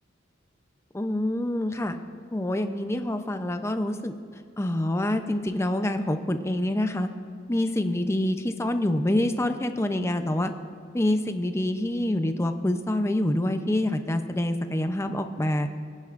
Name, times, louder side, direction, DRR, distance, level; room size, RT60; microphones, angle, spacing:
voice 1, 0.9-2.0 2.3-4.1 4.6-7.1 7.5-10.5 10.9-15.7, left 1 dB, 15° left, 8 dB, 0.5 m, -26 dB
21.0 x 9.7 x 2.5 m, 2.3 s
head